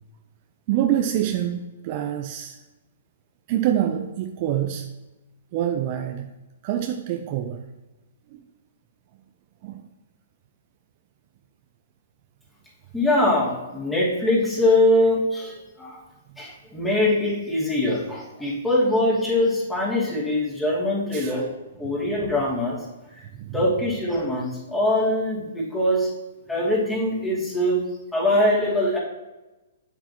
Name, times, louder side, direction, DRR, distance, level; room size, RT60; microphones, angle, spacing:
voice 1, 0.7-2.6 3.5-4.9 5.5-6.3 6.6-7.6 8.3-8.4 9.6-9.9 21.1-21.3 23.3-23.6, right 11 dB, 45° right, 6 dB, 0.6 m, -26 dB
voice 2, 12.9-16.0 16.4-21.5 21.8-23.3 23.5-26.1 26.5-29.0, left 1 dB, 10° left, -6 dB, 2.6 m, -23 dB
8.1 x 7.5 x 3.0 m, 1.1 s
hypercardioid pair, 130°, 0 cm